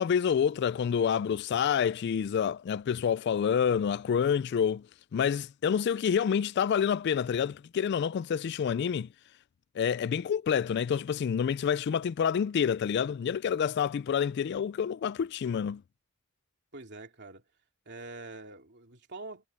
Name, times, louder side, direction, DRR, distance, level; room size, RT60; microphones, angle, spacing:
voice 1, 0.0-4.9 5.1-9.1 9.8-15.8, left 7 dB, 50° left, 0.3 m, -28 dB
voice 2, 16.7-17.4 17.9-19.5, right 2 dB, 50° right, 2.9 m, -45 dB
head